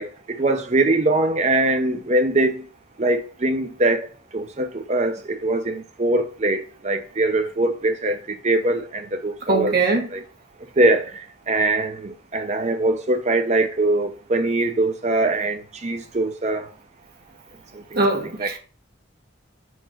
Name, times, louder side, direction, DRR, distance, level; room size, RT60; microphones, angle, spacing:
voice 1, 0.0-2.7 3.0-4.1 4.3-9.8 10.1-10.2 10.8-16.7 17.7-17.8 18.1-18.6, right 2 dB, 35° right, 0.8 m, -22 dB
voice 2, 9.5-10.1 18.0-18.6, right 3 dB, 50° right, 1.8 m, -21 dB
5.2 x 4.6 x 5.7 m
head